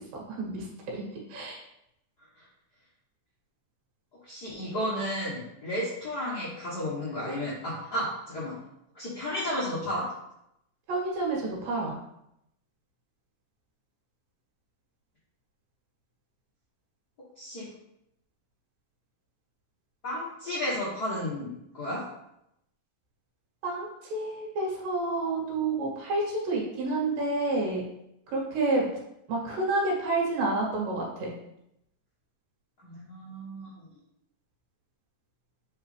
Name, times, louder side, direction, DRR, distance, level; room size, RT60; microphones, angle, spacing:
voice 1, 0.1-0.7 0.9-1.6 10.9-12.0 23.6-27.8 28.3-28.9 29.3-31.3, right 2 dB, 75° right, -3 dB, 3.3 m, -29 dB
voice 2, 4.3-8.5 8.9-10.1 17.4-17.7 20.0-22.0 32.8-33.8, left 1 dB, 75° left, -8 dB, 0.9 m, -33 dB
7.9 x 4.7 x 3.3 m, 0.81 s
omnidirectional pair, 4.1 m